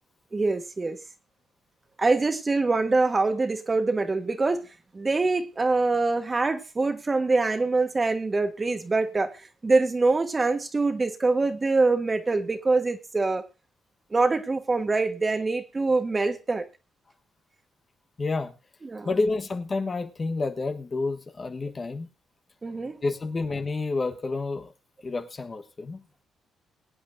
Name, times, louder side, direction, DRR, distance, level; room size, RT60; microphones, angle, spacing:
voice 1, 0.3-1.0 2.0-4.6 4.9-9.3 9.6-13.4 14.1-16.6 18.8-19.1 22.6-23.0, right 3 dB, 25° right, 1.4 m, -24 dB
voice 2, 18.2-18.5 19.0-22.1 23.0-24.7 25.0-26.0, left 3 dB, 35° left, 1.3 m, -29 dB
23.0 x 8.6 x 2.6 m
cardioid pair, 90°, 0 cm